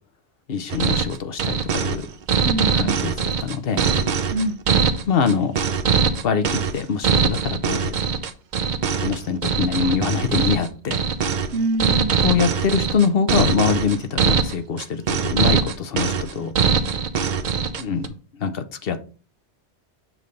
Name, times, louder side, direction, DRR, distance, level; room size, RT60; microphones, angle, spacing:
voice 1, 0.5-2.1 2.7-3.8 5.1-5.6 6.2-7.9 9.0-11.0 12.2-16.5 17.8-19.0, left 6 dB, 60° left, 10 dB, 0.9 m, -24 dB
sound 1, 0.7-18.1, right 6 dB, 50° right, 0.7 m, -22 dB
voice 2, 2.4-3.0 4.3-4.9 11.5-12.4, right 2 dB, 80° right, 11 dB, 1.0 m, -26 dB
7.6 x 3.2 x 5.2 m, 0.38 s
omnidirectional pair, 1.1 m